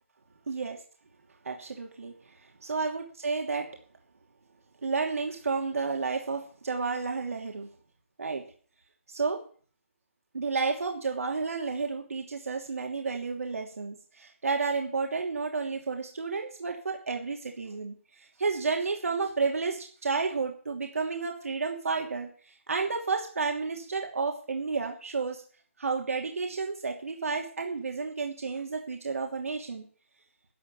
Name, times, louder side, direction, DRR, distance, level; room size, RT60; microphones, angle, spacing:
voice 1, 0.5-0.8 1.4-2.1 2.7-3.7 4.8-7.7 8.2-8.4 9.1-9.4 10.3-22.3 22.7-25.4 25.8-29.8, right 4 dB, 85° right, 1 dB, 2.9 m, -31 dB
11.5 x 11.5 x 7.1 m, 0.44 s
hypercardioid pair, 180°, 8 cm